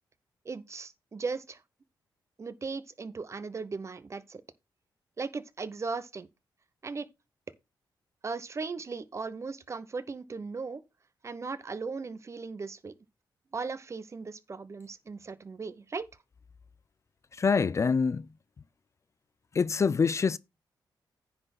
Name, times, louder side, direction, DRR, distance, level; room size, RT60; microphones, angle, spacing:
voice 1, 0.4-1.6 2.4-4.4 5.2-6.3 6.8-7.1 8.2-10.8 11.2-12.9 13.5-16.1, right 4 dB, 35° right, 0.8 m, -37 dB
voice 2, 17.3-18.3 19.5-20.4, left 5 dB, 35° left, 0.4 m, -25 dB
9.8 x 4.3 x 5.8 m
cardioid pair, 100°, 8 cm